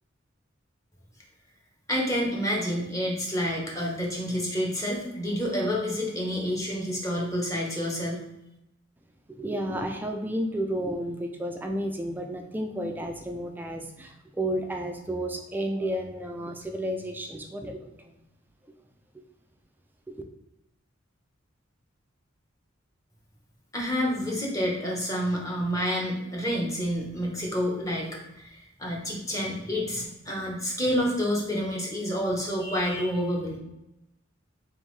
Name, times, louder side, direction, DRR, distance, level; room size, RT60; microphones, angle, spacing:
voice 1, 1.9-8.2 23.7-28.1 28.3-33.6, equal, 15° left, -2 dB, 0.9 m, -28 dB
voice 2, 9.4-18.2 20.1-20.2, right 1 dB, 10° right, 3 dB, 0.3 m, -32 dB
3.5 x 3.4 x 3.2 m, 0.90 s
head